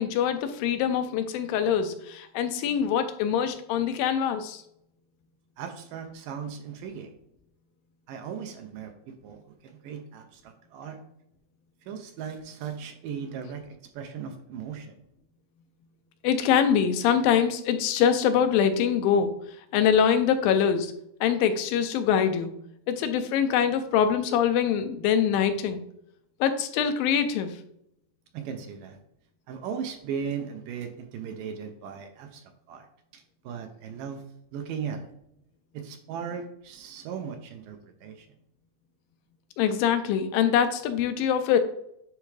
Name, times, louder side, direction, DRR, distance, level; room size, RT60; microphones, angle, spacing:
voice 1, 0.0-4.6 16.2-19.3 19.7-20.9 21.2-22.5 22.9-25.8 26.4-27.6 39.6-41.6, left 8 dB, 90° left, 8 dB, 2.5 m, -24 dB
voice 2, 5.6-7.1 8.1-11.0 11.9-15.0 28.3-29.0 29.5-32.4 32.7-32.9 33.1-34.2 34.5-35.1 35.7-38.3, right 7 dB, 80° right, 5 dB, 2.3 m, -37 dB
9.9 x 3.5 x 3.3 m, 0.75 s
omnidirectional pair, 4.0 m